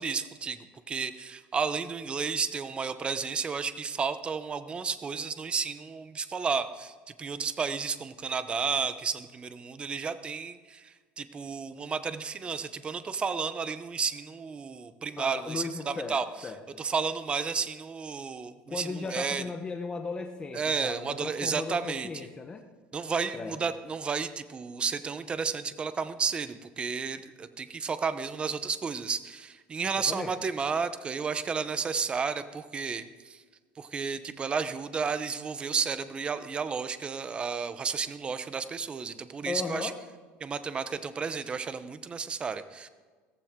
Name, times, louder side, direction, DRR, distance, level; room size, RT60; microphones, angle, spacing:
voice 1, 0.0-16.3 16.8-19.4 20.5-22.1 22.9-33.4 33.8-39.9 40.4-42.9, right 5 dB, 20° right, 12 dB, 0.7 m, -32 dB
voice 2, 15.2-16.8 18.7-22.7 23.3-23.6 30.0-30.3 39.5-40.0, left 4 dB, 20° left, 5 dB, 0.9 m, -36 dB
16.5 x 14.5 x 3.7 m, 1.4 s
cardioid pair, 140°, 5 cm